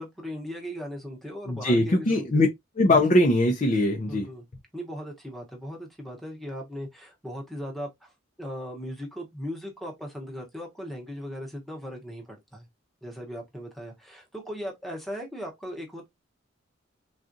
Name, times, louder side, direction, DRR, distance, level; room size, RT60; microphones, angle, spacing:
voice 1, 0.0-2.4 4.1-4.5 4.7-8.1 8.4-12.7 13.0-16.1, equal, ahead, 0.9 m, -38 dB
voice 2, 1.5-2.5 2.8-4.3, left 1 dB, 35° left, 0.5 m, -21 dB
3.7 x 2.4 x 2.5 m
head